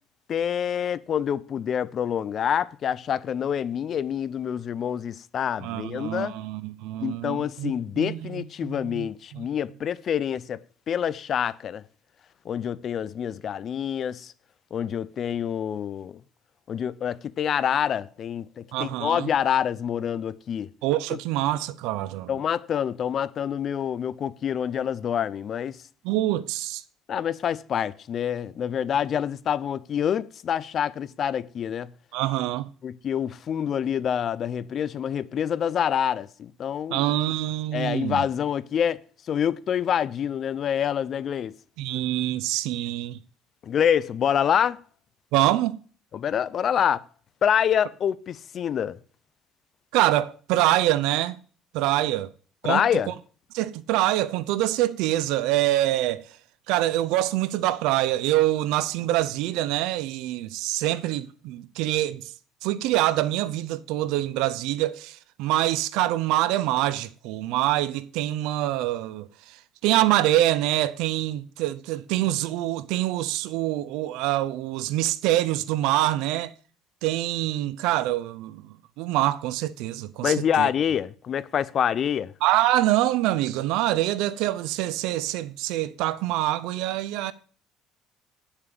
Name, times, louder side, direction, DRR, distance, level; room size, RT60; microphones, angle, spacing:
voice 1, 0.3-6.4 7.0-10.6 10.9-11.8 12.5-14.3 14.7-16.2 16.7-20.7 21.1-21.2 22.3-25.7 27.1-31.9 32.8-37.0 37.7-39.0 39.3-41.6 43.6-44.8 46.1-47.0 47.4-49.0 52.6-53.1 80.2-82.3, left 8 dB, 45° left, 0.5 m, -26 dB
voice 2, 5.6-9.5 18.7-19.3 20.8-22.3 26.0-26.8 32.1-32.7 36.9-38.2 41.8-43.2 45.3-45.8 49.9-51.4 51.7-52.3 52.6-53.1 53.5-56.2 56.7-62.3 62.6-69.3 69.8-76.5 77.0-80.7 82.4-87.3, right 15 dB, 85° right, 0.6 m, -25 dB
8.8 x 7.2 x 6.7 m
cardioid pair, 125°, 0 cm